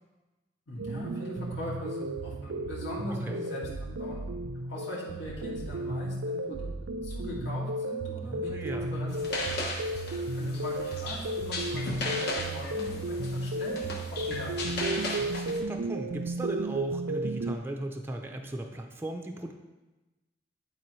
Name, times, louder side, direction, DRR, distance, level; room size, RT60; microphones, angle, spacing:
voice 1, 0.7-4.3 4.7-6.7 7.0-9.6 9.9-15.1, left 1 dB, 80° left, -6 dB, 2.3 m, -41 dB
sound 1, 0.8-17.6, right 2 dB, 85° right, 0.4 m, -34 dB
voice 2, 3.1-3.4 8.2-8.9 15.2-19.5, right 1 dB, 10° right, 3 dB, 0.5 m, -37 dB
sound 2, 9.1-15.6, left 2 dB, 60° left, 1.1 m, -36 dB
11.5 x 4.1 x 3.1 m, 1.1 s
head